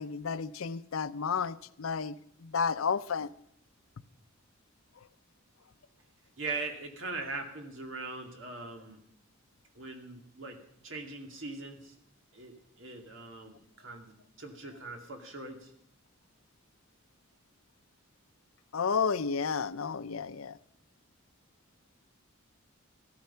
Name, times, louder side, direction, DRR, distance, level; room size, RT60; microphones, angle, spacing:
voice 1, 0.0-2.1 2.4-3.3 18.7-20.6, left 6 dB, 85° left, 0.6 m, -31 dB
voice 2, 6.4-9.0 9.7-11.9 12.3-15.7, right 3 dB, 65° right, 2.4 m, -41 dB
15.5 x 14.0 x 5.7 m
head